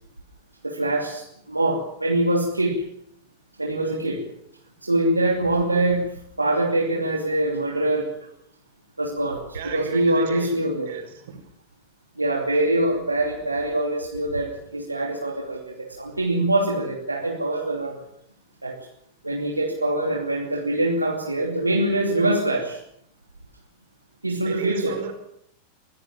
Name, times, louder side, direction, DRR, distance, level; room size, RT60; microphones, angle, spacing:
voice 1, 0.6-2.8 3.6-4.2 4.8-6.1 6.4-8.3 9.0-10.9 12.2-18.0 18.6-18.8 19.2-22.8 24.2-25.0, right 1 dB, 85° right, 2.7 m, -24 dB
voice 2, 9.5-10.6 10.9-11.4 24.5-25.1, right 7 dB, 60° right, 5.2 m, -35 dB
24.5 x 16.5 x 7.2 m
figure-of-eight pair, 90°, 0 cm